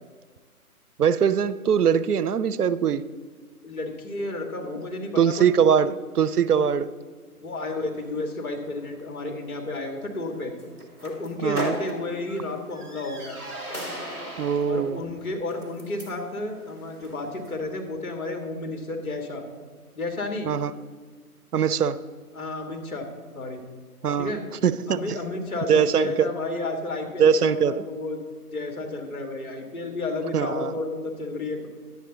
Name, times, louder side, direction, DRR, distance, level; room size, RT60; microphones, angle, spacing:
voice 1, 1.0-3.0 5.2-6.9 11.4-11.7 14.4-15.0 20.5-20.7 21.5-22.0 24.0-24.3 24.6-25.2 25.7-26.3 27.2-27.8 30.3-30.7, right 7 dB, 80° right, 15 dB, 0.6 m, -22 dB
voice 2, 3.6-5.8 6.5-6.7 7.4-10.5 11.0-13.4 14.7-19.4 20.0-20.5 22.3-23.1 23.3-23.6 24.2-24.4 24.9-28.2 28.5-31.7, left 2 dB, 65° left, 2 dB, 1.8 m, -32 dB
sound 1, 7.5-17.6, equal, 5° left, 0.7 m, -40 dB
10.5 x 8.1 x 4.0 m, 1.5 s
figure-of-eight pair, 140°, 45 cm